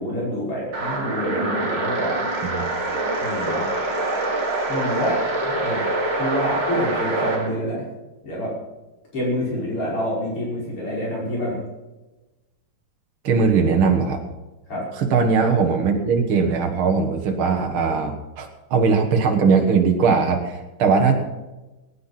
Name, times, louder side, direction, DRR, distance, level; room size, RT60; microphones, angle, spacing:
voice 1, 0.0-2.3 3.2-3.6 4.7-5.8 6.2-7.9 8.2-8.5 9.1-11.6 14.7-14.9 21.0-21.2, equal, 90° left, -5 dB, 6.4 m, -27 dB
sound 1, 0.7-7.5, right 2 dB, 55° right, 3.5 m, -25 dB
voice 2, 13.2-14.2 15.0-21.2, right 5 dB, 70° right, 3 dB, 2.4 m, -20 dB
19.0 x 10.0 x 5.8 m, 1.1 s
omnidirectional pair, 2.4 m